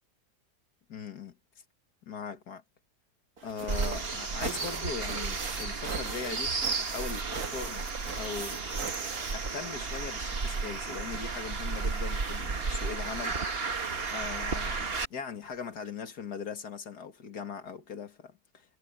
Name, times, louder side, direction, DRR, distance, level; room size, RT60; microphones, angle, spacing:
voice 1, 0.9-1.4 2.1-2.6 3.4-7.9 8.2-8.7 9.3-13.4 14.1-18.8, left 6 dB, 80° left, 2.4 m, -40 dB
sound 1, 3.4-10.1 10.4-14.4 15.4-15.5 15.9-16.0, right 4 dB, 65° right, 2.6 m, -42 dB
sound 2, 3.7-15.0, right 4 dB, 40° right, 1.6 m, -33 dB
omnidirectional pair, 1.7 m